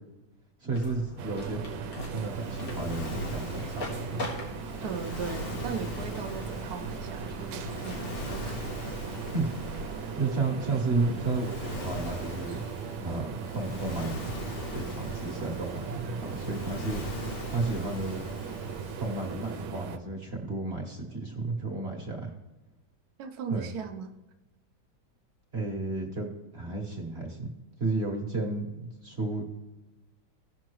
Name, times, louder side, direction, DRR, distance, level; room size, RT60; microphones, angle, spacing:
voice 1, 0.6-1.6 2.1-4.2 9.3-9.5 10.2-12.6 13.0-14.3 14.6-17.0 17.5-18.2 19.0-22.3 23.5-23.7 25.5-27.5 27.8-29.4, right 3 dB, 40° right, 1 dB, 1.2 m, -32 dB
sound 1, 0.7-10.0, equal, 85° left, 2.6 m, -42 dB
sound 2, 1.2-20.0, right 7 dB, 80° right, 1.5 m, -39 dB
Waves surf, 2.2-19.7, left 1 dB, 50° left, 1.4 m, -40 dB
voice 2, 4.8-8.7 23.2-24.1, right 6 dB, 60° right, 5 dB, 1.0 m, -38 dB
17.0 x 5.8 x 3.1 m, 1.1 s
omnidirectional pair, 2.3 m